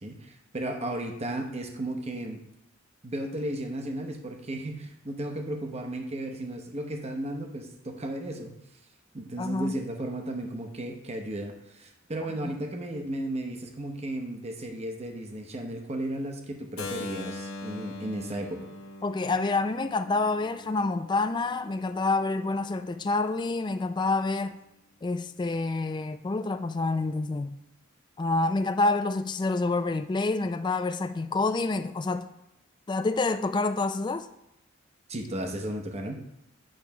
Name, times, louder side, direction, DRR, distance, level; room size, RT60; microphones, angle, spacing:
voice 1, 0.0-2.4 3.0-8.5 9.1-18.7 35.1-36.2, right 1 dB, 30° right, 0.8 m, -34 dB
voice 2, 9.4-9.7 12.4-12.6 19.0-24.6 25.0-27.5 28.2-32.2 32.9-34.3, left 3 dB, 20° left, 0.3 m, -27 dB
Keyboard (musical), 16.8-22.6, left 2 dB, 85° left, 0.8 m, -42 dB
8.9 x 3.1 x 5.7 m
head